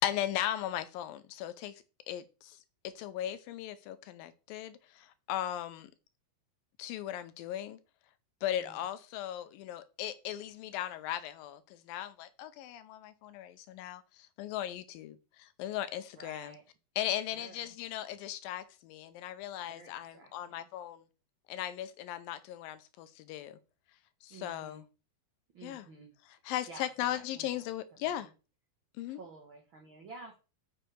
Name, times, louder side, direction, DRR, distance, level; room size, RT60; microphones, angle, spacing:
voice 1, 0.0-1.8 2.1-2.6 3.0-5.9 6.8-7.8 8.4-16.5 17.0-21.0 21.5-23.6 24.2-24.8 25.6-25.9 26.5-28.3 29.0-29.2, left 12 dB, 85° left, 2.3 m, -37 dB
voice 2, 8.5-8.8 16.1-16.6 17.3-17.7 19.7-20.7 24.3-24.8 25.5-26.1 26.7-27.7 27.9-28.3 29.1-30.4, right 3 dB, 90° right, 1.1 m, -52 dB
8.9 x 6.3 x 3.3 m
omnidirectional pair, 4.2 m